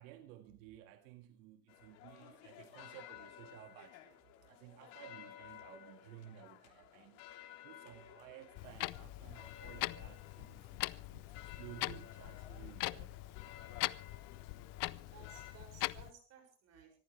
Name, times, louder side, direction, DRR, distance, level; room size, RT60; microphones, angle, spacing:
voice 1, 0.0-4.1 4.4-7.2 7.6-13.2, right 13 dB, 85° right, 1.8 m, -55 dB
sound 1, 1.7-15.5, left 12 dB, 85° left, 3.2 m, -55 dB
Clock, 8.5-16.1, left 21 dB, 55° left, 0.7 m, -42 dB
voice 2, 14.8-16.9, right 6 dB, 40° right, 6.3 m, -59 dB
25.0 x 14.5 x 3.2 m
cardioid pair, 150°, 39 cm